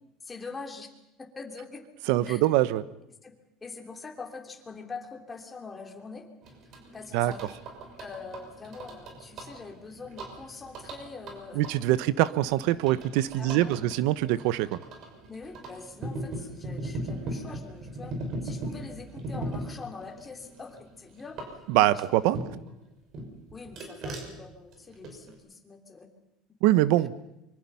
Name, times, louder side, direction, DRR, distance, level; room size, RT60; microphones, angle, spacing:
voice 1, 0.2-0.9 1.2-1.8 2.3-2.4 3.2-6.3 6.9-7.6 8.0-11.6 13.4-13.9 15.3-21.5 21.9-22.0 23.5-26.1, left 4 dB, 20° left, 3 dB, 3.3 m, -43 dB
voice 2, 2.1-2.8 7.1-7.3 11.5-14.8 21.7-22.4 26.6-27.1, right 15 dB, 75° right, 16 dB, 1.0 m, -24 dB
sound 1, 6.4-22.7 23.1-25.3, right 1 dB, 50° right, 6.1 m, -39 dB
24.5 x 24.0 x 5.7 m, 0.89 s
supercardioid pair, 120°, 0 cm